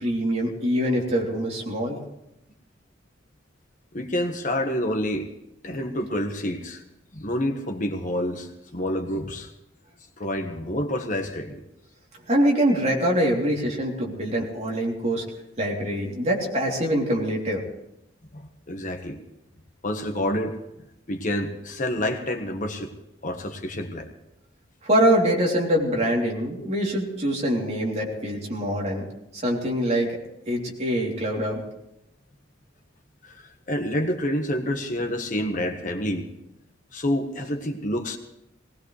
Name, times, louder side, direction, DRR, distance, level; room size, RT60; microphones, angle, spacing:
voice 1, 0.0-2.0 12.3-15.2 15.6-17.6 24.8-29.0 29.3-30.1 30.5-31.6, equal, 35° right, -2 dB, 3.4 m, -24 dB
voice 2, 3.9-5.3 5.6-6.8 7.1-9.5 10.2-11.6 18.3-19.2 19.8-20.6 21.1-22.9 23.2-24.1 26.6-26.7 33.2-36.3 36.9-38.2, left 1 dB, 45° left, 5 dB, 1.5 m, -28 dB
20.0 x 19.0 x 3.4 m, 0.86 s
head